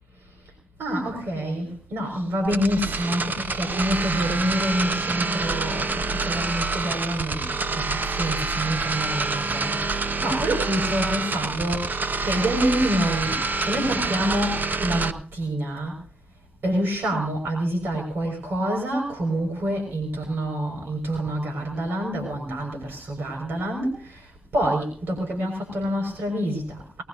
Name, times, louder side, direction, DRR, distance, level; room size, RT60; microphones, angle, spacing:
voice 1, 0.8-16.0 16.6-27.0, equal, 85° right, 2 dB, 5.0 m, -27 dB
sound 1, 2.4-15.1, right 3 dB, 55° right, 0.9 m, -27 dB
21.0 x 20.5 x 2.6 m, 0.37 s
cardioid pair, 50°, 4 cm